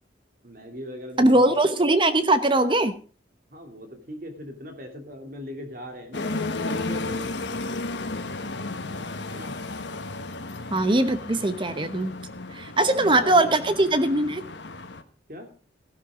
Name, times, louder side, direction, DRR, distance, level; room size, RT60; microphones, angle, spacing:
voice 1, 0.4-1.6 3.5-7.3 9.3-9.6 12.7-13.7 15.3-15.5, equal, 50° right, 4 dB, 2.9 m, -39 dB
voice 2, 1.2-2.9 10.7-12.1 12.5-14.4, right 2 dB, 25° right, 11 dB, 0.9 m, -21 dB
sound 1, 6.1-15.0, left 2 dB, 80° left, 1.4 m, -33 dB
15.5 x 12.0 x 3.7 m, 0.39 s
head